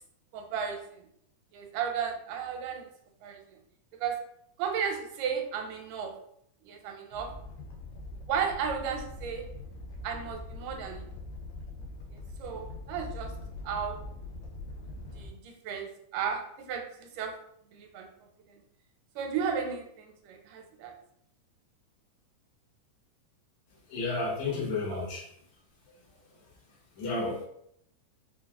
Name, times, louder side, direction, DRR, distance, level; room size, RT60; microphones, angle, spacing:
voice 1, 0.3-1.0 1.5-2.9 3.2-3.4 4.0-4.2 4.6-6.1 6.6-7.3 8.3-9.4 10.0-11.0 12.4-13.3 13.6-14.0 15.2-17.3 17.7-18.1 19.2-20.9 24.9-25.1, right 7 dB, 85° right, 4 dB, 2.1 m, -34 dB
Animal, 7.1-15.3, left 2 dB, 90° left, 2.3 m, -42 dB
voice 2, 23.9-25.2 27.0-27.4, left 3 dB, 65° left, -5 dB, 2.3 m, -31 dB
5.8 x 2.2 x 2.3 m, 0.71 s
omnidirectional pair, 3.7 m